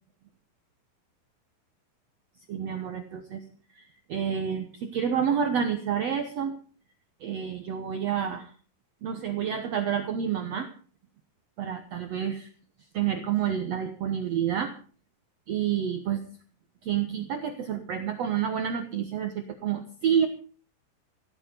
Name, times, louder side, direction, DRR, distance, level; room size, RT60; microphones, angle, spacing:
voice 1, 2.5-3.4 3.8-3.9 4.1-6.6 7.2-8.5 9.0-10.7 11.6-12.5 12.9-14.7 15.5-16.2 16.8-20.3, right 8 dB, 60° right, 7 dB, 1.9 m, -29 dB
16.5 x 14.0 x 5.3 m, 0.42 s
omnidirectional pair, 4.0 m